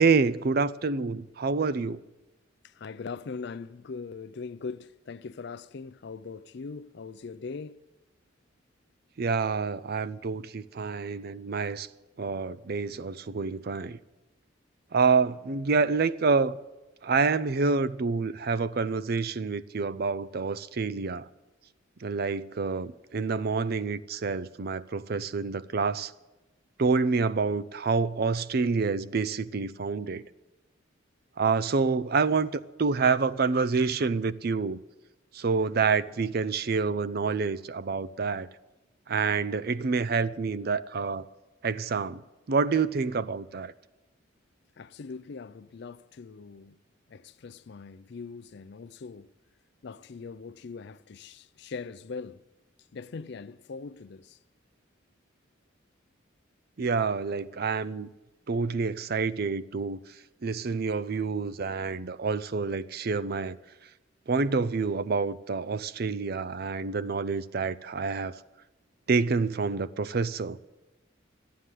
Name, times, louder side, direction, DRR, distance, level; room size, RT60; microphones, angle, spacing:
voice 1, 0.0-2.0 9.2-11.9 12.2-14.0 14.9-16.5 17.0-21.3 22.0-26.1 26.8-30.3 31.4-34.8 35.3-38.5 39.1-41.2 41.6-42.2 42.5-43.7 56.8-58.1 58.5-60.0 60.4-63.6 64.3-68.4 69.1-70.6, right 4 dB, 50° right, 0.5 m, -27 dB
voice 2, 2.6-7.8 44.8-46.8 47.1-49.3 49.8-52.4 52.9-54.4, left 4 dB, 55° left, 0.4 m, -41 dB
13.0 x 9.3 x 9.8 m
head